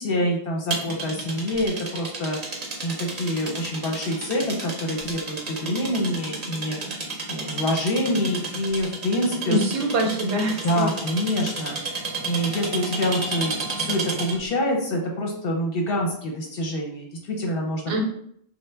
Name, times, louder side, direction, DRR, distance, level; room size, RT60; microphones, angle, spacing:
voice 1, 0.0-2.4 2.8-6.8 7.3-9.6 10.6-11.8 12.2-18.0, left 1 dB, 55° left, 0 dB, 0.8 m, -26 dB
sound 1, 0.7-14.5, right 3 dB, 40° right, 0.7 m, -32 dB
voice 2, 9.4-10.9 17.9-18.0, right 1 dB, 75° right, 2 dB, 0.9 m, -24 dB
3.1 x 2.2 x 3.3 m, 0.67 s
omnidirectional pair, 1.2 m